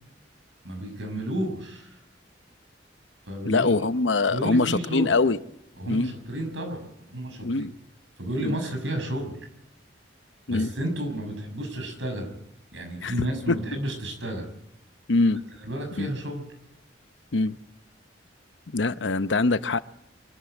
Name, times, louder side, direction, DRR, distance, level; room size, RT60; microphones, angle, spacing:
voice 1, 0.6-2.0 3.2-3.8 4.3-5.2 5.8-7.6 8.2-9.3 10.5-12.3 12.7-14.5 15.6-16.5, right 1 dB, 80° right, 6.2 m, -32 dB
voice 2, 3.5-5.4 5.9-6.1 7.4-7.7 8.4-8.6 10.5-10.7 13.0-13.1 15.1-15.4 16.0-16.1 17.3-17.6 18.7-19.8, left 3 dB, 75° left, 0.8 m, -23 dB
24.5 x 13.0 x 8.9 m
head